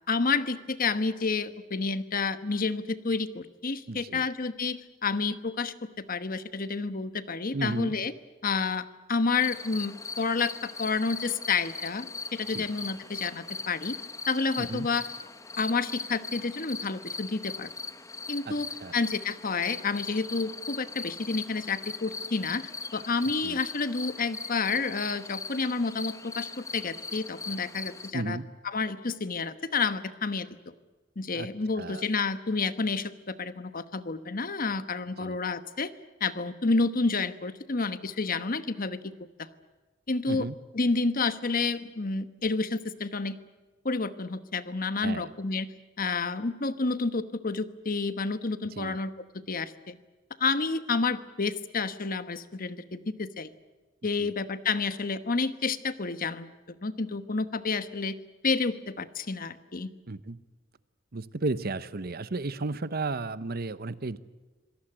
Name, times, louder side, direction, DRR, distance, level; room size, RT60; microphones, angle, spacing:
voice 1, 0.1-8.1 8.4-13.9 14.3-15.0 15.6-17.7 18.3-28.4 28.6-30.7 31.2-35.9 36.2-39.1 39.4-39.5 40.1-40.5 40.7-43.4 43.8-45.7 46.0-49.1 49.5-50.0 50.4-53.5 54.0-58.2 58.4-59.9, left 4 dB, 50° left, 12 dB, 1.2 m, -30 dB
voice 2, 3.9-4.3 7.5-7.9 12.5-12.7 14.6-14.9 18.5-18.6 18.8-19.0 23.4-23.6 28.1-28.4 31.3-31.5 31.8-32.0 35.2-35.4 40.3-40.5 45.0-45.3 48.7-49.0 54.2-54.3 60.1-60.4 61.1-64.2, right 3 dB, 55° right, 15 dB, 0.9 m, -33 dB
sound 1, 9.4-28.1, left 4 dB, 15° left, 1.2 m, -39 dB
26.0 x 18.0 x 9.0 m, 1.2 s
head